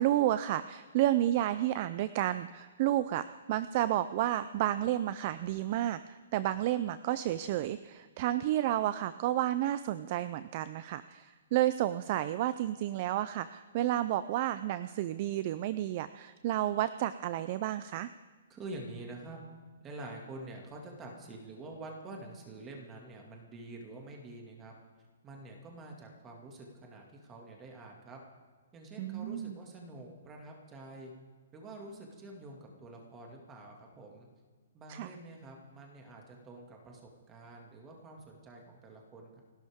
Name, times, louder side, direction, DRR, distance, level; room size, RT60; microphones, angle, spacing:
voice 1, 0.0-18.1 29.0-29.6 34.9-35.1, right 13 dB, 30° right, 14 dB, 0.4 m, -31 dB
voice 2, 18.5-19.4 19.8-24.8 25.2-28.2 28.7-31.1 31.5-34.3 34.7-37.0 37.3-39.4, right 2 dB, 15° right, 1 dB, 2.1 m, -47 dB
29.0 x 12.0 x 3.6 m, 1.5 s
hypercardioid pair, 170°, 0 cm